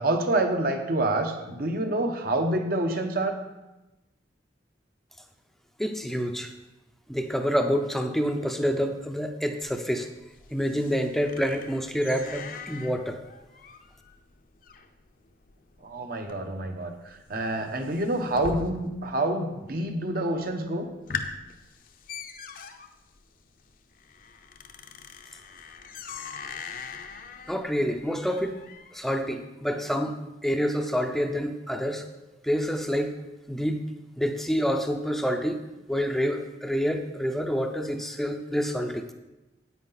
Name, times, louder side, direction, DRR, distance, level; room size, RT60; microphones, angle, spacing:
voice 1, 0.0-3.4 15.8-20.9, right 1 dB, 55° right, 5 dB, 1.0 m, -27 dB
voice 2, 5.8-6.5 7.1-10.1 10.5-13.2 27.5-28.5 28.9-30.2 30.4-32.1 32.4-33.1 33.5-33.8 34.2-35.6 35.9-39.1, equal, ahead, 6 dB, 0.6 m, -27 dB
sound 1, 9.6-19.2 19.4-20.0 20.4-20.5 20.9-29.2, left 5 dB, 50° left, 0.6 m, -42 dB
9.6 x 8.8 x 4.0 m, 1.0 s
head